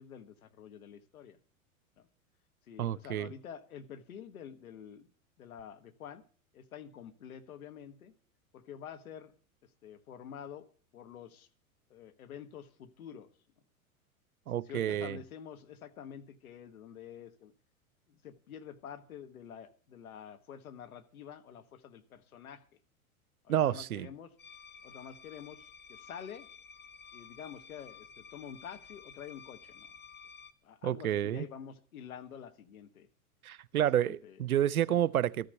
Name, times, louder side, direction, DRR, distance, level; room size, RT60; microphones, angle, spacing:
voice 1, 0.0-1.4 2.0-2.1 2.7-5.1 5.4-6.2 6.5-8.1 8.5-9.3 9.6-10.7 10.9-11.5 11.9-13.3 14.5-17.5 18.1-22.6 23.4-24.3 24.8-26.5 27.1-29.9 30.6-33.1 33.8-34.4 34.9-35.0, left 8 dB, 80° left, 1.5 m, -48 dB
voice 2, 2.8-3.3 14.5-15.2 23.5-24.1 30.8-31.5 33.4-35.5, right 11 dB, 90° right, 0.6 m, -29 dB
sound 1, 24.4-30.5, left 6 dB, 25° left, 1.0 m, -52 dB
13.5 x 6.7 x 8.1 m
hypercardioid pair, 95°, 42 cm